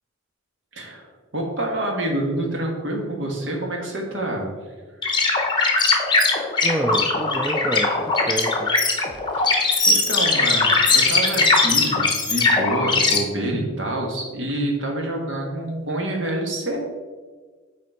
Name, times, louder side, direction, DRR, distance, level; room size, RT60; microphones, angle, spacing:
voice 1, 0.7-1.1 1.3-4.5 9.3-16.8, right 1 dB, 70° right, 0 dB, 1.6 m, -27 dB
sound 1, 5.0-13.2, left 3 dB, 25° left, 0.8 m, -20 dB
voice 2, 6.6-8.7, right 1 dB, 15° right, 4 dB, 0.4 m, -27 dB
8.3 x 4.3 x 4.4 m, 1.4 s
head